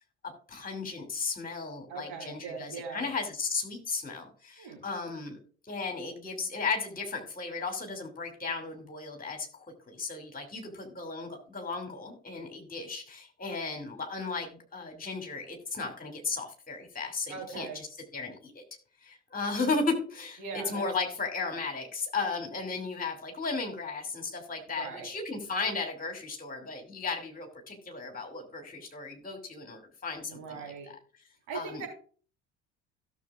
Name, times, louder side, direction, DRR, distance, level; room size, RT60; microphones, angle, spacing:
voice 1, 0.5-5.4 5.7-17.9 18.1-18.6 19.0-31.0 31.5-31.9, left 4 dB, 25° left, 3 dB, 2.8 m, -35 dB
voice 2, 1.9-3.1 4.6-4.8 17.3-17.8 20.4-20.9 24.7-25.1 30.2-30.9 31.5-31.9, right 5 dB, 60° right, 0 dB, 4.5 m, -40 dB
16.5 x 7.0 x 2.5 m, 0.43 s
figure-of-eight pair, 60°, 33 cm